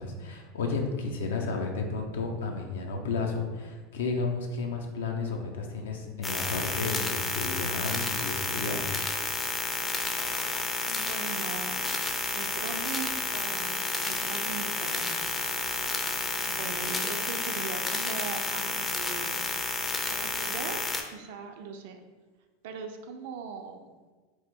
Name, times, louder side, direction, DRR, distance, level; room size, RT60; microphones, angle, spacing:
voice 1, 0.0-8.9, left 4 dB, 85° left, 3 dB, 0.4 m, -32 dB
sound 1, 6.2-21.0, left 3 dB, 20° left, 0.4 m, -31 dB
voice 2, 10.8-15.1 16.5-19.6 20.2-22.0 22.6-23.9, right 5 dB, 70° right, 5 dB, 0.4 m, -40 dB
2.9 x 2.1 x 3.5 m, 1.3 s
hypercardioid pair, 95°, 0 cm